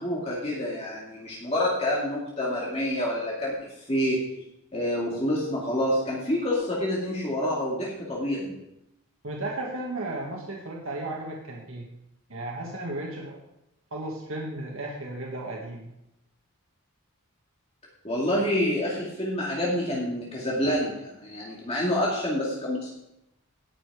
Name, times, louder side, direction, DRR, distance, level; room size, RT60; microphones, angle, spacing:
voice 1, 0.0-4.2 4.7-8.5 18.0-22.9, left 1 dB, 30° left, -5 dB, 2.4 m, -27 dB
voice 2, 9.2-11.9 12.3-13.4 13.9-15.8, right 2 dB, 70° right, -1 dB, 1.7 m, -34 dB
17.5 x 6.8 x 4.9 m, 0.86 s
head